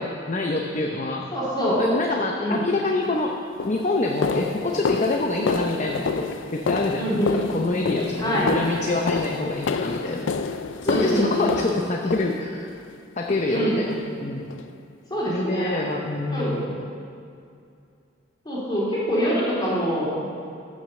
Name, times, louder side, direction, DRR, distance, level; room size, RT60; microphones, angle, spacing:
voice 1, 0.0-1.3 1.8-3.3 3.6-7.2 7.5-10.5 10.8-12.7 13.2-14.5 15.3-16.8, left 2 dB, 40° left, 1 dB, 0.7 m, -26 dB
voice 2, 1.3-1.8 2.4-2.6 5.4-5.5 7.0-7.5 8.2-8.5 10.8-11.5 13.5-13.7 15.1-15.8 16.3-16.7 18.5-20.1, equal, 20° left, -8 dB, 3.6 m, -24 dB
sound 1, 2.9-3.0 3.6-12.8 13.3-13.6 13.9-14.1 14.5-14.7 15.1-15.2 15.7-15.8, left 4 dB, 85° left, 0.5 m, -29 dB
14.0 x 6.3 x 6.9 m, 2.4 s
head